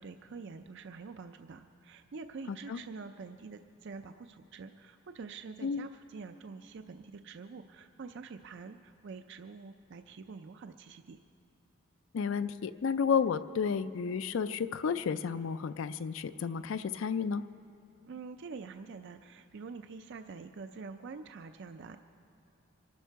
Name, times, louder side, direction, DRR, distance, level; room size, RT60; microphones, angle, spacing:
voice 1, 0.0-11.2 18.1-22.0, right 4 dB, 55° right, 8 dB, 0.4 m, -46 dB
voice 2, 2.5-2.8 5.6-5.9 12.1-17.4, left 6 dB, 65° left, 11 dB, 0.4 m, -32 dB
24.5 x 12.0 x 4.6 m, 3.0 s
head